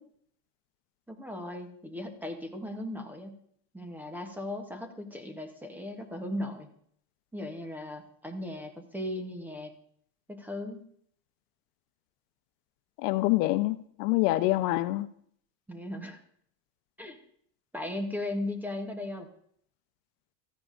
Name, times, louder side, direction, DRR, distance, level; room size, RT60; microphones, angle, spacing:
voice 1, 1.1-3.4 3.7-6.7 7.3-9.7 10.3-10.8 15.7-16.2 17.0-17.2 17.7-19.3, left 1 dB, 5° right, 5 dB, 0.7 m, -37 dB
voice 2, 13.0-15.1, left 18 dB, 85° left, 13 dB, 0.7 m, -26 dB
15.5 x 13.5 x 2.5 m, 0.63 s
cardioid pair, 165°, 46 cm